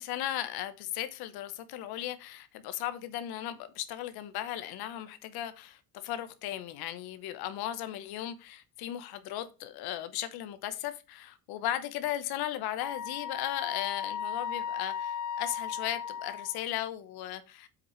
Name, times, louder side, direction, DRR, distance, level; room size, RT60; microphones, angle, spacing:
voice 1, 0.0-17.7, left 12 dB, 85° left, 1.1 m, -36 dB
Wind instrument woodwind instrument, 12.8-16.7, left 7 dB, 55° left, 0.7 m, -36 dB
7.9 x 6.1 x 3.1 m
cardioid pair, 120°, 37 cm